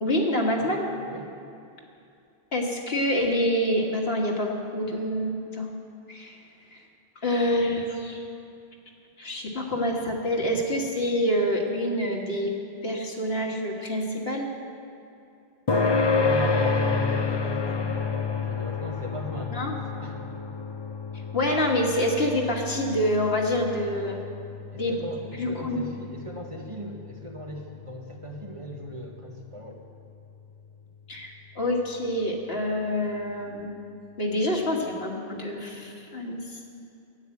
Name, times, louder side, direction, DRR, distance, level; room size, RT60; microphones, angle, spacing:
voice 1, 0.0-0.9 2.5-5.7 6.1-6.4 6.7-6.8 7.2-8.3 9.2-12.5 12.8-14.5 19.5-19.7 21.3-24.2 24.7-24.9 25.4-25.8 31.1-33.7 34.2-36.8, left 1 dB, 80° left, 0 dB, 1.8 m, -27 dB
sound 1, 15.7-30.6, left 4 dB, 30° left, 0.6 m, -30 dB
voice 2, 15.9-20.4 24.7-29.8, equal, 30° right, 0 dB, 1.3 m, -38 dB
10.5 x 9.0 x 8.3 m, 2.6 s
omnidirectional pair, 1.0 m